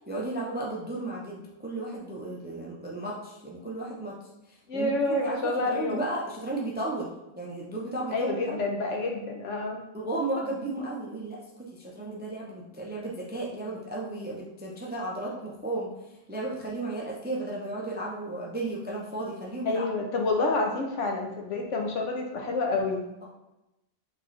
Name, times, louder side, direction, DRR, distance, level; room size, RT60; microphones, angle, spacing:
voice 1, 0.1-4.1 4.5-5.4 5.7-8.6 9.9-15.9 16.3-19.8, right 2 dB, 15° right, -3 dB, 0.4 m, -34 dB
voice 2, 4.7-6.0 8.1-9.8 19.6-23.0, left 3 dB, 75° left, 1 dB, 1.1 m, -28 dB
4.0 x 3.6 x 3.2 m, 0.94 s
omnidirectional pair, 1.3 m